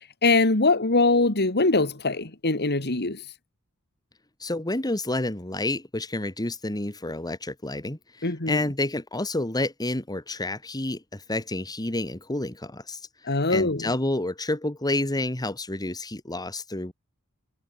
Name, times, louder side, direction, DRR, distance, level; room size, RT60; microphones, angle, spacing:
voice 1, 0.2-3.2 8.2-8.6 13.3-13.9, left 3 dB, 50° left, 2.7 m, -22 dB
voice 2, 4.4-16.9, left 2 dB, 20° left, 2.0 m, -29 dB
head